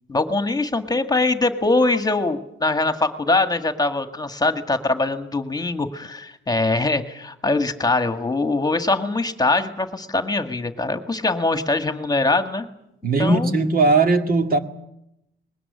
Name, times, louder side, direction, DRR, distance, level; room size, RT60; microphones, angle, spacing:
voice 1, 0.1-12.7 13.2-13.5, left 2 dB, 20° left, 8 dB, 1.8 m, -22 dB
voice 2, 13.0-14.6, right 3 dB, 45° right, 6 dB, 2.1 m, -18 dB
21.0 x 17.0 x 9.7 m, 0.82 s
cardioid pair, 90°, 20 cm